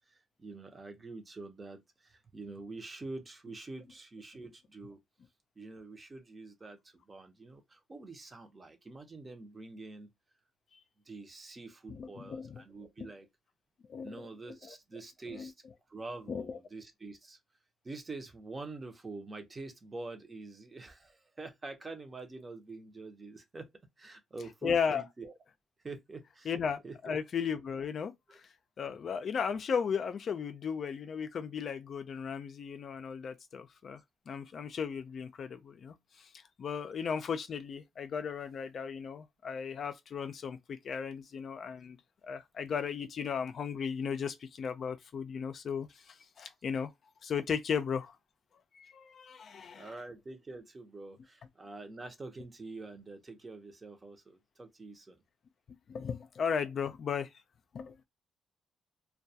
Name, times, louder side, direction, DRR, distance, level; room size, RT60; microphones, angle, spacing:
voice 1, 0.1-5.0 5.6-10.1 11.1-13.3 14.0-15.5 15.9-17.4 17.8-23.7 24.0-25.3 25.8-26.6 26.8-27.2 49.7-55.2, right 3 dB, 30° right, 0.7 m, -46 dB
voice 2, 11.9-12.6 13.0-13.1 13.9-14.1 14.7-14.8 15.3-15.5 16.3-16.4 24.6-25.0 26.5-28.4 28.8-34.0 34.3-36.3 36.6-42.0 42.2-46.9 47.2-48.2 48.7-49.9 55.9-57.3 57.7-58.0, left 6 dB, 55° left, 0.4 m, -36 dB
2.2 x 2.2 x 2.7 m
cardioid pair, 90°, 0 cm